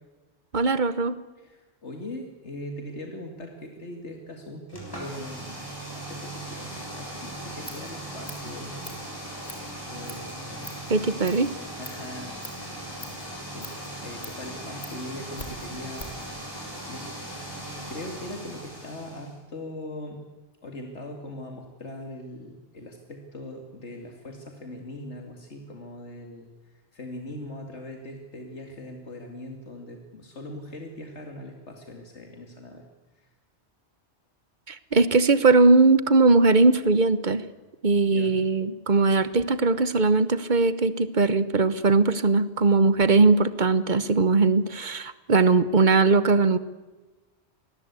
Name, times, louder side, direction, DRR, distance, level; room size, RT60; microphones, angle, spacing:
voice 1, 0.5-1.2 10.9-11.5 34.7-37.4 37.8-46.6, right 3 dB, 45° right, 14 dB, 1.2 m, -20 dB
voice 2, 1.4-5.6 5.9-8.8 9.9-10.7 11.7-12.5 13.0-13.7 14.0-17.1 17.9-20.2 20.6-32.8 33.1-33.3 38.1-38.4, left 1 dB, 85° left, 3 dB, 2.7 m, -40 dB
sound 1, 4.7-19.3, right 1 dB, 20° left, 7.8 m, -38 dB
Scissors, 7.4-16.3, left 1 dB, 45° left, 3.6 m, -46 dB
25.5 x 20.0 x 8.3 m, 1.2 s
omnidirectional pair, 1.1 m